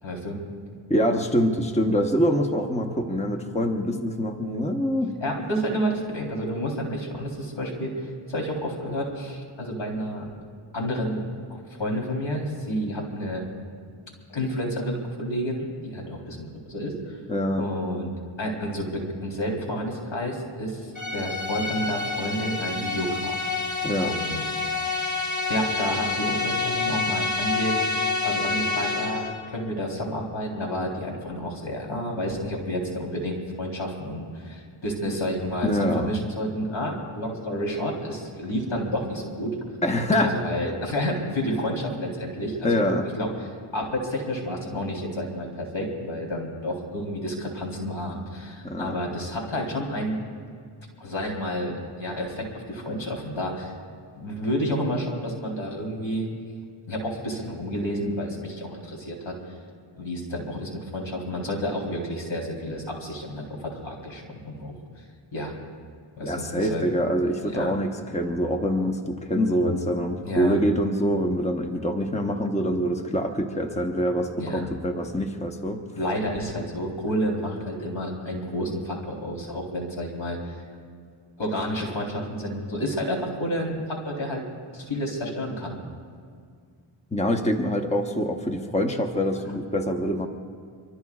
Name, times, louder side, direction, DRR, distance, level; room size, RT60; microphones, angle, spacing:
voice 1, 0.0-0.4 5.2-10.3 10.7-11.2 11.5-13.5 14.3-17.2 17.6-18.1 18.4-23.4 24.0-25.0 25.5-27.9 28.2-39.6 40.2-42.9 43.2-43.5 43.7-50.3 51.0-53.8 54.2-56.2 56.9-59.4 60.0-64.7 65.3-65.5 66.2-66.8 67.4-67.7 70.2-70.6 74.4-74.6 76.0-80.6 81.4-84.4 84.7-85.8, equal, 75° left, 0 dB, 3.8 m, -30 dB
voice 2, 0.9-5.1 17.3-17.6 23.8-24.1 35.6-36.1 39.8-40.4 42.6-43.1 48.6-49.0 66.2-75.8 87.1-90.3, equal, 15° left, 4 dB, 1.0 m, -25 dB
sound 1, 21.0-29.4, left 3 dB, 35° left, 1.8 m, -28 dB
25.0 x 24.0 x 2.4 m, 2.1 s
wide cardioid pair, 75°, 48 cm